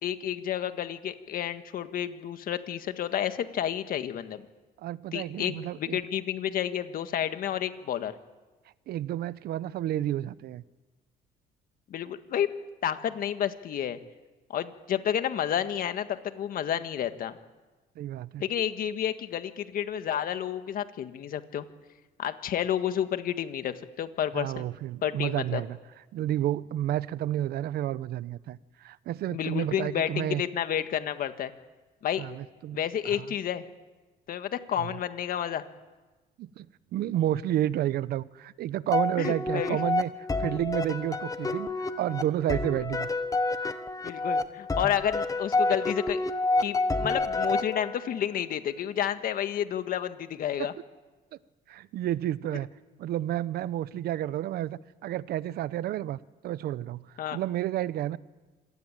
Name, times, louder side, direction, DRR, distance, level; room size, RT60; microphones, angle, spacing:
voice 1, 0.0-4.4 5.1-8.1 11.9-12.5 12.8-14.0 14.5-17.3 18.4-21.6 22.2-24.7 25.0-25.6 29.3-31.5 32.0-32.2 32.7-33.6 34.3-35.6 39.2-39.8 44.0-46.2 46.6-50.7 57.2-57.4, left 10 dB, 60° left, 1.7 m, -30 dB
voice 2, 4.8-6.0 8.9-10.6 18.0-18.4 24.3-25.8 26.1-30.4 32.2-33.3 34.8-34.9 36.4-36.7 36.9-40.1 40.4-43.1 50.6-50.7 51.7-52.7 53.0-56.2 56.4-58.2, right 12 dB, 70° right, 0.8 m, -31 dB
sound 1, 38.9-48.2, left 2 dB, 20° left, 1.4 m, -29 dB
26.5 x 18.5 x 9.0 m
cardioid pair, 110°, 17 cm